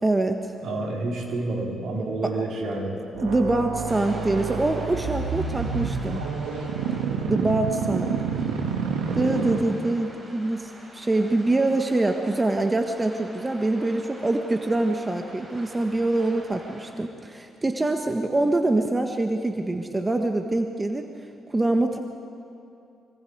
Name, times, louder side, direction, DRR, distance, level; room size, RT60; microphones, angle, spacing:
voice 1, 0.0-0.5 2.2-2.3 3.2-6.2 7.2-8.2 9.1-21.1 21.5-22.0, right 2 dB, 25° right, 5 dB, 1.5 m, -24 dB
voice 2, 0.6-3.0, right 2 dB, 65° right, -1 dB, 4.0 m, -29 dB
sound 1, 3.1-10.1, right 6 dB, 90° right, 1.5 m, -29 dB
sound 2, 3.8-16.9, right 1 dB, 45° right, 5.8 m, -46 dB
24.5 x 24.5 x 4.8 m, 2.6 s
supercardioid pair, 50°, 0 cm